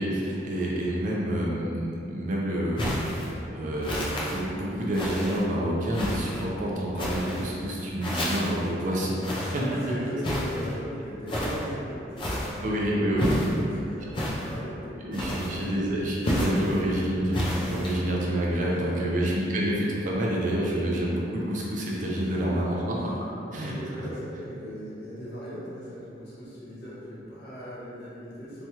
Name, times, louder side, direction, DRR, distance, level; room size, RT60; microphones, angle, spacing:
voice 1, 0.0-9.8 12.6-13.2 15.1-23.1 23.5-23.7, right 1 dB, 40° right, -4 dB, 0.4 m, -28 dB
sound 1, 2.8-3.3 3.8-4.4 4.9-5.4 5.9-6.4 7.0-7.5 8.0-8.7 9.2-9.7 10.2-10.7 11.3-11.7 12.2-12.6 13.2-13.6 14.1-14.6 15.1-15.7 16.2-16.8 17.3-18.0, left 1 dB, 25° left, 0.3 m, -30 dB
voice 2, 9.7-15.8 16.7-17.2 17.6-17.7 18.6-19.1 22.2-22.6 22.9-23.2 23.5-28.6, equal, 60° left, -9 dB, 0.9 m, -38 dB
3.0 x 2.2 x 2.7 m, 2.7 s
head